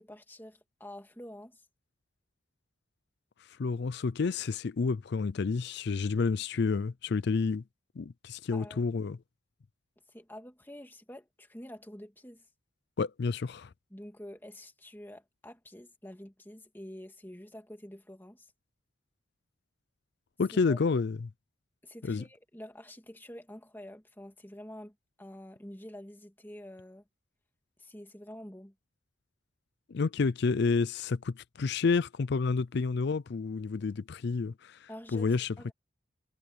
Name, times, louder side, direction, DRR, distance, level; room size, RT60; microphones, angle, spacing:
voice 1, 0.0-1.6 8.5-8.8 10.1-12.5 13.9-18.5 20.5-20.8 21.8-27.0 27.8-28.7 34.9-35.7, left 1 dB, 10° left, 2.2 m, -47 dB
voice 2, 3.6-7.6 8.0-9.2 13.0-13.7 20.4-21.3 22.0-22.2 29.9-35.7, left 4 dB, 55° left, 0.4 m, -30 dB
head